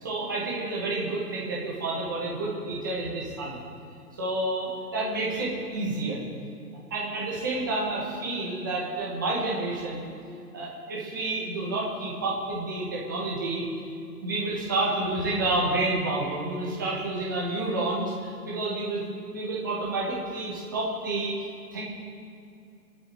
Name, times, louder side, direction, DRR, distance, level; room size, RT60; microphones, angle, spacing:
voice 1, 0.0-3.6 4.2-6.2 6.9-10.0 10.5-13.6 14.2-19.0 19.3-21.3 21.7-21.8, right 2 dB, 10° right, -6 dB, 1.6 m, -29 dB
25.0 x 8.9 x 4.8 m, 2.5 s
hypercardioid pair, 175°, 48 cm